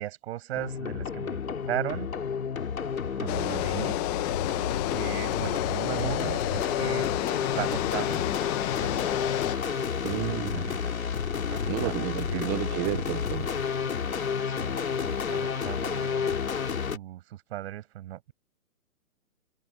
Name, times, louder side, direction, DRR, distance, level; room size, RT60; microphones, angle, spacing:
voice 1, 0.0-1.4 1.7-2.1 3.2-3.9 4.9-7.1 7.5-8.2 8.7-9.0 9.5-9.6 10.1-10.9 11.5-11.9 12.2-12.5 14.5-18.3, right 14 dB, 50° right, 6.1 m, -37 dB
sound 1, 0.5-17.0, left 6 dB, 80° left, 3.3 m, -31 dB
sound 2, 3.3-9.6, left 25 dB, 30° left, 1.1 m, -31 dB
voice 2, 10.0-10.7 11.6-13.5, right 25 dB, 15° right, 0.6 m, -32 dB
hypercardioid pair, 135°, 41 cm